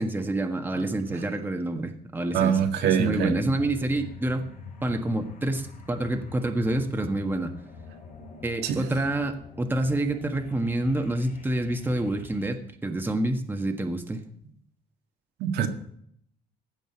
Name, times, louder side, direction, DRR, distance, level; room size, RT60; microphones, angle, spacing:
voice 1, 0.0-4.5 4.8-7.5 8.4-14.2, right 1 dB, 10° right, 5 dB, 1.5 m, -28 dB
voice 2, 2.3-3.4 8.6-8.8 15.4-15.7, right 8 dB, 80° right, 4 dB, 1.7 m, -24 dB
sound 1, 3.4-12.5, left 5 dB, 45° left, 3.0 m, -45 dB
15.5 x 5.3 x 8.9 m, 0.68 s
cardioid pair, 110°, 17 cm